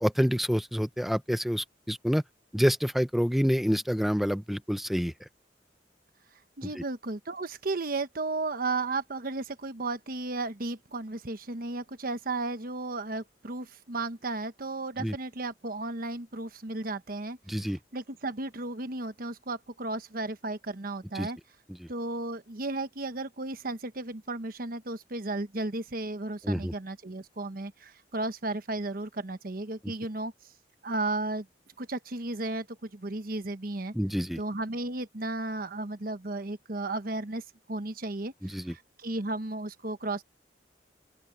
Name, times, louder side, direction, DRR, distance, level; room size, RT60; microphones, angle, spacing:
voice 1, 0.0-2.2 2.5-5.1 6.8-6.9 15.0-15.1 17.5-17.8 21.1-21.3 26.4-26.7 29.8-29.9 33.9-34.4 38.4-38.7, equal, ahead, 0.7 m, -27 dB
voice 2, 6.6-21.4 21.9-30.3 30.8-31.5 31.8-33.9 34.4-37.4 37.7-40.2, right 2 dB, 55° right, 1.2 m, -34 dB
open air
head